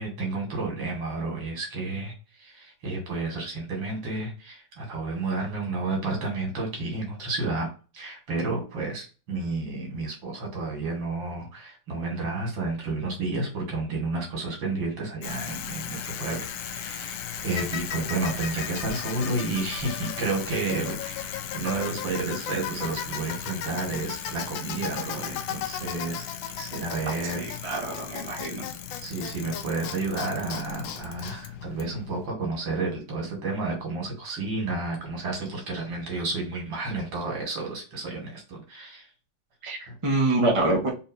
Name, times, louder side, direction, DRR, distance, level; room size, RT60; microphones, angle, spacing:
voice 1, 0.0-7.7 7.9-27.4 29.0-39.1 39.9-40.0, right 3 dB, 75° right, 1 dB, 2.4 m, -31 dB
Bicycle, 15.2-32.3, left 9 dB, 85° left, 1.4 m, -35 dB
voice 2, 27.4-28.7 39.6-40.9, right 2 dB, 25° right, -1 dB, 0.8 m, -26 dB
4.2 x 3.3 x 2.6 m, 0.34 s
omnidirectional pair, 2.1 m